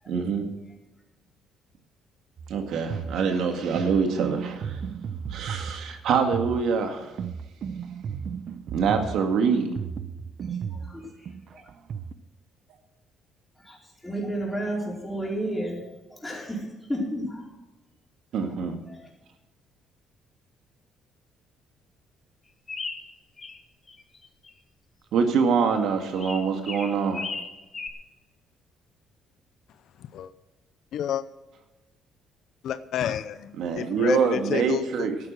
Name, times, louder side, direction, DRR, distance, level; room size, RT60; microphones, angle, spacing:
voice 1, 0.1-0.5 2.5-4.8 5.3-7.1 8.7-9.7 18.3-18.8 25.1-27.2 33.6-35.2, right 6 dB, 70° right, 5 dB, 2.0 m, -25 dB
sound 1, 2.4-12.1, right 7 dB, 50° right, 0.7 m, -35 dB
voice 2, 10.5-11.7 13.6-13.8 14.0-17.5 18.3-18.5 18.9-19.1, right 1 dB, 10° left, -2 dB, 4.7 m, -33 dB
sound 2, 22.7-23.6 23.9-24.5 26.1-27.9, left 4 dB, 30° left, 1.5 m, -36 dB
voice 3, 30.9-31.2 32.6-35.1, left 10 dB, 65° left, 13 dB, 0.6 m, -30 dB
13.0 x 9.6 x 6.2 m, 1.1 s
cardioid pair, 125°, 0 cm